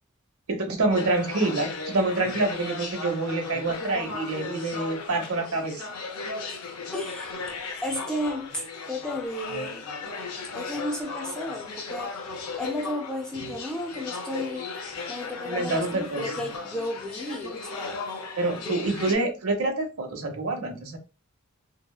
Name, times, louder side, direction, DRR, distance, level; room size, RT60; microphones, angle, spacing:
voice 1, 0.5-5.8 15.4-16.3 18.4-21.0, right 2 dB, 75° right, 0.8 m, -27 dB
sound 1, 0.9-19.1, left 4 dB, 85° left, 0.6 m, -36 dB
voice 2, 6.9-9.8 10.5-14.7 15.1-17.9 18.5-19.2, left 1 dB, 5° left, 0.4 m, -34 dB
2.8 x 2.0 x 2.3 m
head